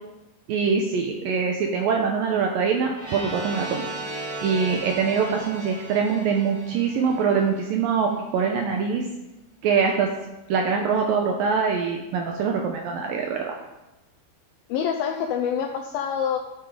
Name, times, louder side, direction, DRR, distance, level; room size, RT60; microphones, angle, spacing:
voice 1, 0.5-3.8 4.4-9.1 9.6-10.1 10.5-13.6, right 6 dB, 75° right, 2 dB, 2.2 m, -23 dB
sound 1, 2.9-7.8, right 2 dB, 20° right, 2.9 m, -36 dB
voice 2, 14.7-16.4, left 8 dB, 80° left, 3 dB, 2.2 m, -26 dB
12.0 x 8.7 x 5.0 m, 0.98 s
omnidirectional pair, 5.0 m